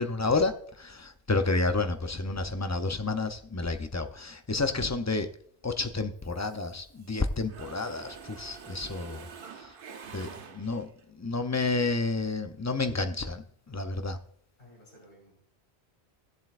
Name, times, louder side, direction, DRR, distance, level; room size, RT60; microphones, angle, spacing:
voice 1, 0.0-5.3 5.6-9.3 9.5-9.7 10.1-10.9 11.1-14.2, left 3 dB, 25° left, 0.4 m, -30 dB
Mechanisms, 6.2-7.2 7.5-11.0, right 6 dB, 60° right, 0.9 m, -46 dB
voice 2, 14.6-15.5, equal, 60° left, 4.8 m, -55 dB
17.0 x 7.5 x 2.4 m
omnidirectional pair, 1.1 m